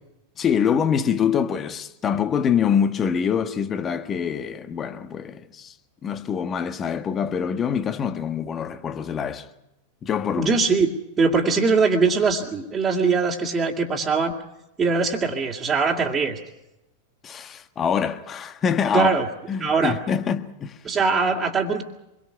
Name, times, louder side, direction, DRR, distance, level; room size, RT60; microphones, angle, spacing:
voice 1, 0.4-5.7 6.0-9.5 10.0-10.6 17.2-19.1 19.5-20.8, left 7 dB, 25° left, 1.5 m, -25 dB
voice 2, 10.4-14.4 14.8-16.4 18.9-19.2 19.6-20.0 20.8-21.8, right 4 dB, 20° right, 2.5 m, -21 dB
26.5 x 22.5 x 5.9 m
figure-of-eight pair, 90°, 0 cm